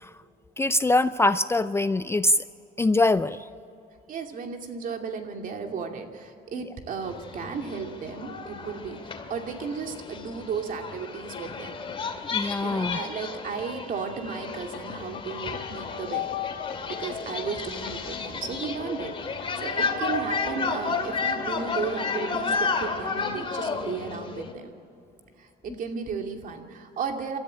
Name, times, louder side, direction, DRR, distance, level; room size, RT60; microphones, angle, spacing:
voice 1, 0.6-2.4 2.8-3.5 6.5-6.6 12.3-13.0, left 2 dB, 15° left, 13 dB, 0.5 m, -23 dB
voice 2, 4.1-11.7 12.6-16.3 16.9-19.2 19.6-24.7 25.4-27.4, right 5 dB, 55° right, 4 dB, 2.6 m, -34 dB
sound 1, 7.0-24.5, left 4 dB, 30° left, 2.5 m, -32 dB
sound 2, 14.4-21.7, left 9 dB, 50° left, 1.5 m, -38 dB
27.0 x 13.5 x 8.8 m, 2.6 s
cardioid pair, 110°, 17 cm